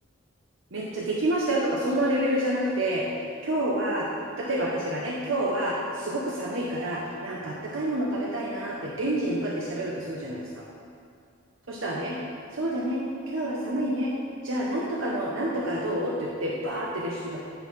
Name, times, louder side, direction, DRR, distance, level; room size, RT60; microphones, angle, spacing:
voice 1, 0.7-4.1 4.4-10.6 11.7-12.2 12.5-14.1 14.4-17.4, right 1 dB, 65° right, -4 dB, 0.9 m, -28 dB
9.9 x 4.0 x 5.6 m, 2.4 s
head